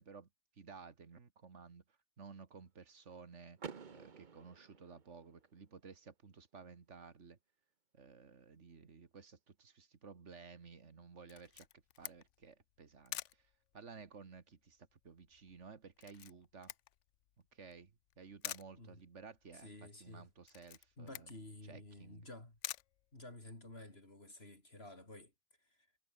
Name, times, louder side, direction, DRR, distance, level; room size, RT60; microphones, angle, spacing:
voice 1, 0.0-3.6 3.9-7.4 7.9-11.7 12.0-16.7 17.5-21.3 21.6-22.3, right 5 dB, 75° right, 2.1 m, -55 dB
Car / Door, 3.6-5.5, right 6 dB, 45° right, 1.1 m, -51 dB
Camera, 11.3-23.8, left 12 dB, 80° left, 1.0 m, -51 dB
voice 2, 19.5-20.3 21.0-22.6 23.1-25.3 25.6-25.9, left 2 dB, 55° left, 5.1 m, -52 dB
omnidirectional pair, 1.2 m